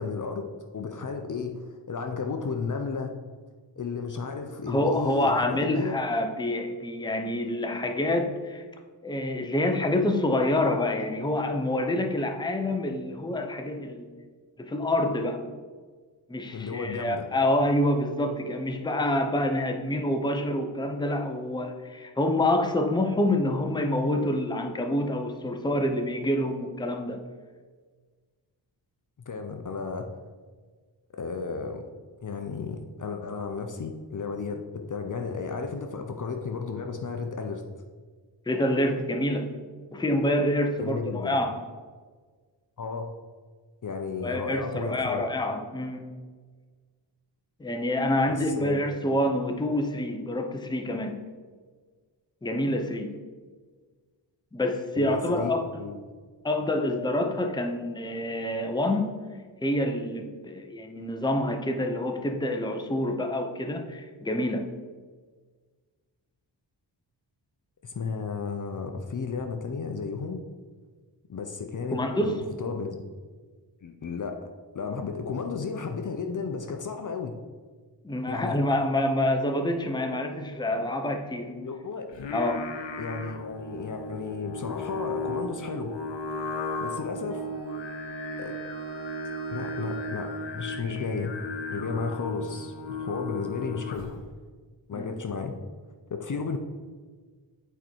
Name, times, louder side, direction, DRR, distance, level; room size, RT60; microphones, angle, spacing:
voice 1, 0.0-3.2 3.8-6.0 16.5-17.3 29.2-30.1 31.1-31.8 32.2-37.6 40.8-41.4 42.8-43.1 43.8-45.3 48.3-49.0 54.9-56.3 67.8-70.4 71.3-73.1 73.8-74.4 74.7-77.4 78.3-78.6 81.5-82.1 83.0-85.9 86.8-87.5 88.4-88.6 89.5-91.4 91.7-94.2 94.9-95.5 96.1-96.6, left 5 dB, 45° left, 5 dB, 0.7 m, -33 dB
voice 2, 4.7-8.6 9.0-14.1 14.6-15.4 16.3-27.2 38.5-39.5 39.9-41.6 44.2-46.1 47.6-51.2 52.4-53.1 54.5-55.6 56.4-59.1 59.6-64.7 71.9-72.4 78.0-81.5 82.3-82.7 94.9-95.1, left 1 dB, 10° left, 4 dB, 0.8 m, -27 dB
Singing, 82.1-94.3, left 2 dB, 70° left, 1.0 m, -35 dB
Wind instrument woodwind instrument, 87.3-91.4, right 7 dB, 30° right, 0.7 m, -45 dB
8.0 x 4.4 x 4.5 m, 1.5 s
cardioid pair, 65°, 45 cm